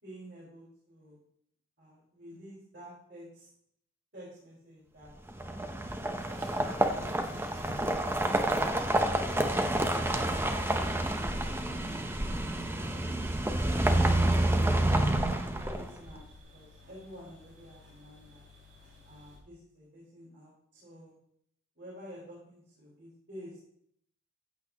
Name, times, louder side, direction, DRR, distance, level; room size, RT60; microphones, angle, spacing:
voice 1, 0.0-1.2 1.8-3.5 4.1-5.1 5.4-5.8 6.3-7.9 12.7-16.2 16.5-18.4 19.0-21.1 21.8-23.6, equal, 55° right, -8 dB, 4.3 m, -51 dB
sound 1, 5.3-16.1, right 1 dB, 10° right, 0.7 m, -28 dB
sound 2, 6.2-19.4, left 1 dB, 70° right, 3.6 m, -53 dB
14.5 x 8.4 x 2.9 m, 0.69 s
head